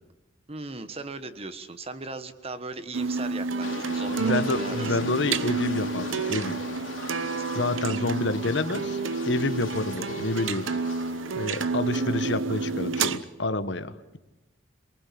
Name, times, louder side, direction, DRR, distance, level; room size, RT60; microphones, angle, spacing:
voice 1, 0.5-5.1, right 3 dB, 30° right, 11 dB, 1.4 m, -38 dB
sound 1, 2.9-13.2, right 4 dB, 90° right, 1.0 m, -29 dB
sound 2, 3.6-11.8 12.2-12.3, left 3 dB, 90° left, 3.8 m, -40 dB
voice 2, 4.2-6.6 7.5-9.0 9.3-10.7 11.4-14.2, left 2 dB, 65° left, 11 dB, 1.3 m, -28 dB
27.0 x 19.5 x 8.7 m, 1.0 s
head